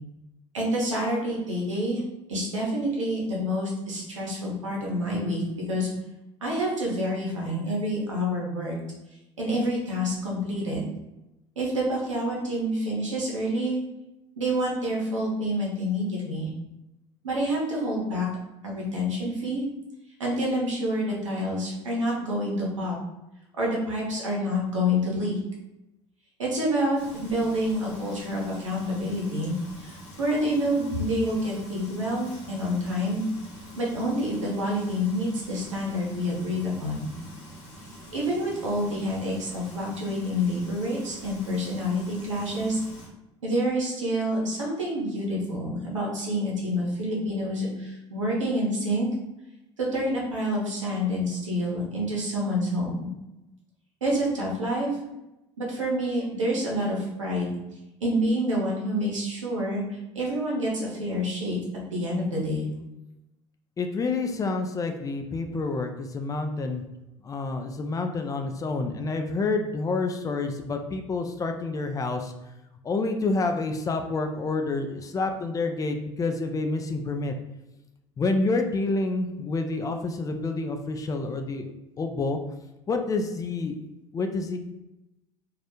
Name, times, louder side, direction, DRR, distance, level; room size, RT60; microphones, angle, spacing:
voice 1, 0.5-2.0 2.3-5.4 5.7-5.9 6.4-8.8 9.4-10.8 11.6-13.8 14.4-16.5 17.2-18.3 18.6-19.6 20.2-23.0 23.6-25.4 26.4-33.2 33.8-37.1 38.1-42.8 43.4-49.1 49.8-53.1 54.0-55.0 55.6-57.5 58.0-61.6 61.9-62.7, equal, 90° right, -3 dB, 0.7 m, -28 dB
Frying (food), 27.0-43.0, equal, 75° left, 0.9 m, -45 dB
voice 2, 63.8-66.8 67.2-72.3 72.8-77.3 78.2-81.7 82.0-82.4 82.9-83.8 84.1-84.6, left 3 dB, 20° left, 5 dB, 0.3 m, -28 dB
2.3 x 2.0 x 2.9 m, 0.94 s
hypercardioid pair, 70°, 16 cm